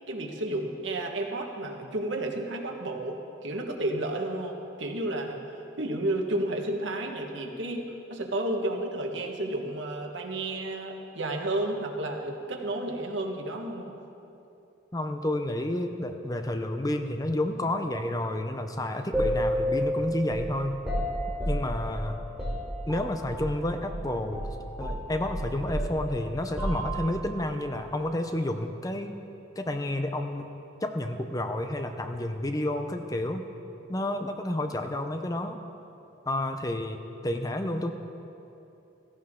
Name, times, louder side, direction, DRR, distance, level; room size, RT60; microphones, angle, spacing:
voice 1, 0.1-5.4 5.8-13.9, right 1 dB, 75° right, 2 dB, 1.5 m, -32 dB
voice 2, 14.9-20.8 21.5-22.2 22.9-24.4 24.8-29.2 29.6-30.5 30.8-33.5 33.9-35.6 36.3-37.9, left 1 dB, 20° left, 6 dB, 0.6 m, -30 dB
sound 1, 19.1-23.6 23.8-24.0 24.3-27.3, equal, 5° right, 3.2 m, -31 dB
16.0 x 14.5 x 3.7 m, 2.9 s
head